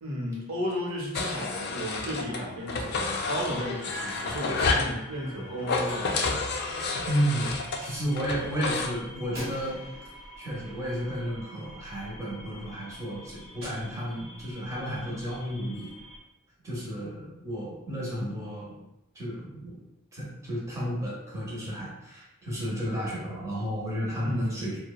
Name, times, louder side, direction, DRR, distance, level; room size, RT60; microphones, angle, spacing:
voice 1, 0.0-6.3 24.2-24.5, equal, 80° right, -2 dB, 0.7 m, -33 dB
sound 1, 1.1-2.4 2.7-4.9 5.6-8.9, left 3 dB, 50° left, 0.3 m, -30 dB
sound 2, 1.3-16.2, left 1 dB, 25° left, 0.7 m, -48 dB
voice 2, 7.1-9.8 10.4-15.9 16.6-18.7 19.1-19.7 20.1-24.8, equal, 15° right, -6 dB, 0.7 m, -32 dB
Gunshot gunfire, 9.3-11.7 13.6-14.6, equal, 50° right, 0.9 m, -46 dB
2.7 x 2.1 x 2.2 m, 0.90 s
head